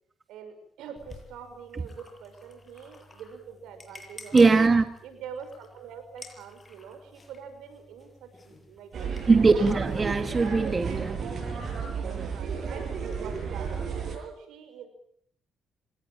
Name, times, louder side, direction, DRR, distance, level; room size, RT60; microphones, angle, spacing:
voice 1, 0.3-4.6 5.0-9.1 9.4-10.3 12.2-14.9, right 7 dB, 85° right, 8 dB, 6.0 m, -44 dB
sound 1, 1.0-10.0, left 2 dB, 25° left, 7.4 m, -51 dB
voice 2, 4.3-4.8 9.3-11.8, right 4 dB, 30° right, 9 dB, 1.9 m, -21 dB
sound 2, 8.9-14.2, right 6 dB, 60° right, 7.7 m, -33 dB
25.5 x 19.0 x 9.0 m, 0.66 s
cardioid pair, 90°, 0 cm